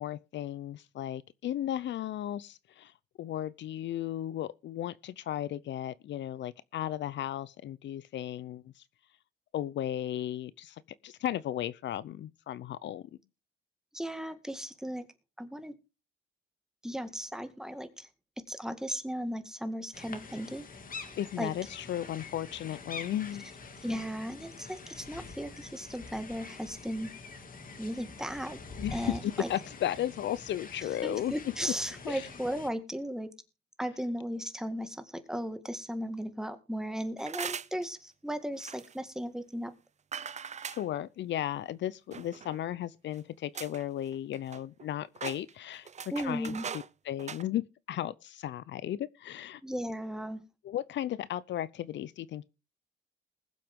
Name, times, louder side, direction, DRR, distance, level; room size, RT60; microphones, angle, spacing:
voice 1, 0.0-2.9 3.2-8.8 9.5-13.0 21.2-23.5 28.8-31.3 32.0-32.3 40.7-47.6 47.9-49.6 50.6-52.4, left 12 dB, 65° left, 0.6 m, -35 dB
voice 2, 13.9-15.0 15.4-15.7 16.8-18.1 18.5-20.7 21.4-21.5 23.8-27.1 27.8-28.6 28.9-29.5 31.0-33.3 33.8-39.7 46.1-46.7 49.6-50.4, equal, 5° right, 1.9 m, -36 dB
sound 1, 19.9-32.7, left 4 dB, 45° left, 2.5 m, -46 dB
sound 2, 37.2-37.8 38.6-38.9 40.1-40.8 42.1-42.6 43.1-43.2 43.5-43.8 44.1-44.8 45.1-46.9 47.2-47.4, right 7 dB, 35° right, 0.7 m, -40 dB
20.5 x 7.5 x 3.7 m
cardioid pair, 90°, 20 cm